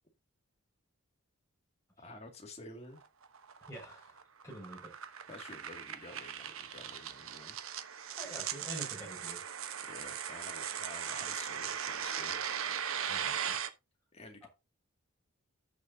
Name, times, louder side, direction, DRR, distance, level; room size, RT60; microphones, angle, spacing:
voice 1, 2.0-3.0 5.3-7.6 9.8-12.4 14.1-14.5, left 2 dB, 30° left, 2.2 m, -50 dB
sound 1, 3.0-13.7, right 8 dB, 70° right, 1.0 m, -39 dB
voice 2, 3.6-4.9 8.2-9.4 13.1-13.6 14.4-14.5, right 1 dB, 15° left, 5.3 m, -47 dB
14.0 x 6.8 x 2.7 m
head